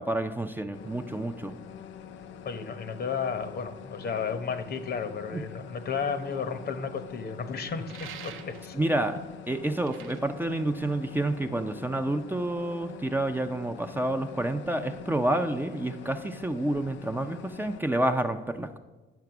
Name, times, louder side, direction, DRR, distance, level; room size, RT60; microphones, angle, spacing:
voice 1, 0.0-1.5 5.3-5.4 8.7-9.2 9.5-18.8, right 1 dB, 10° right, 6 dB, 0.5 m, -29 dB
sound 1, 0.7-17.8, left 9 dB, 70° left, 0.5 m, -45 dB
voice 2, 2.4-8.8, left 6 dB, 50° left, 9 dB, 0.9 m, -33 dB
sound 2, 7.9-8.9 9.6-11.4, right 9 dB, 90° right, 0.7 m, -46 dB
9.3 x 5.8 x 5.9 m, 1.2 s
cardioid pair, 90°, 20 cm